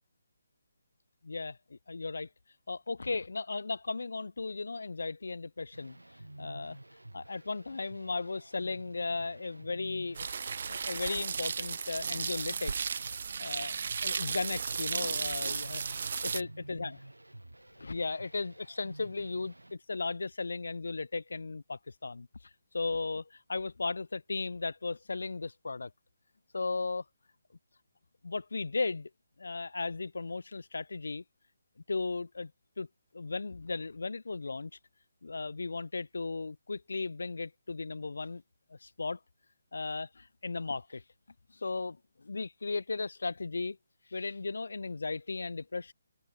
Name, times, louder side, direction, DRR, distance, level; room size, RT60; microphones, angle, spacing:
voice 1, 1.2-2.3 2.7-6.0 6.4-6.8 7.1-12.8 13.4-13.8 14.0-17.0 17.8-22.3 22.7-25.9 26.5-27.0 28.2-29.1 29.4-31.2 31.9-32.5 32.8-32.9 33.1-34.7 35.2-38.4 38.7-39.2 39.7-41.0 41.5-43.8 44.1-45.9, left 3 dB, 65° left, 0.6 m, -36 dB
sound 1, 5.7-19.7, right 1 dB, 85° right, 3.3 m, -50 dB
sound 2, 10.1-16.4, right 6 dB, 50° right, 0.4 m, -35 dB
figure-of-eight pair, 145°, 0 cm